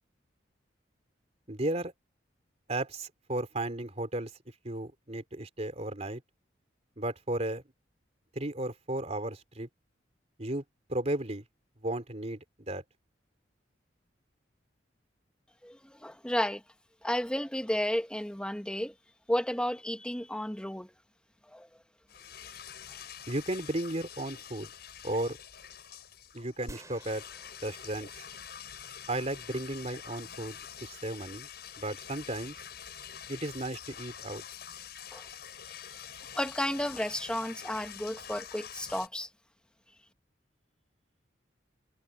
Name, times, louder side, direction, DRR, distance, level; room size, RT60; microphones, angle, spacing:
voice 1, 1.5-1.9 2.7-4.3 4.6-6.2 7.0-7.6 8.3-9.7 10.4-10.6 10.9-11.4 11.8-12.8 23.3-24.7 25.0-25.4 26.3-27.2 27.6-28.1 29.1-30.6 30.8-31.5 31.8-32.6 33.3-34.4, right 1 dB, 35° right, 3.4 m, -34 dB
voice 2, 15.6-16.6 17.0-18.9 19.3-20.9 21.5-21.7 35.1-35.3 36.3-39.3, left 1 dB, 5° left, 1.1 m, -32 dB
sound 1, 22.1-39.1, left 8 dB, 60° left, 7.8 m, -46 dB
sound 2, 26.7-29.0, right 1 dB, 15° right, 4.2 m, -51 dB
head